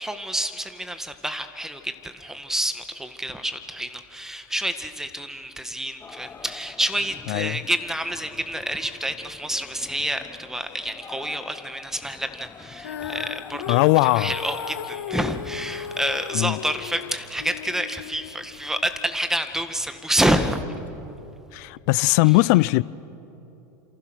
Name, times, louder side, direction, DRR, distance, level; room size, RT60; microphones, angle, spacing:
voice 1, 0.0-20.6, right 1 dB, 5° right, 1.8 m, -28 dB
sound 1, 6.0-20.9, left 5 dB, 20° left, 1.0 m, -46 dB
Female singing, 12.8-19.1, left 9 dB, 85° left, 0.9 m, -36 dB
voice 2, 13.7-14.3 16.3-16.6 21.5-22.8, left 22 dB, 60° left, 0.6 m, -19 dB
29.5 x 27.5 x 6.4 m
hypercardioid pair, 105°, 10 cm